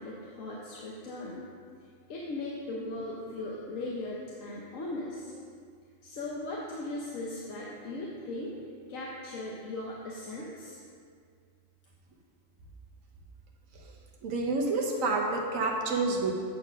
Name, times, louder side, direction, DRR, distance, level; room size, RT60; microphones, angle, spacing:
voice 1, 0.0-1.5 2.1-5.3 6.0-8.5 8.9-10.8, left 2 dB, 80° left, -4 dB, 1.3 m, -38 dB
voice 2, 14.2-16.3, right 3 dB, 85° right, 0 dB, 1.4 m, -28 dB
9.1 x 4.5 x 6.2 m, 2.2 s
omnidirectional pair, 1.3 m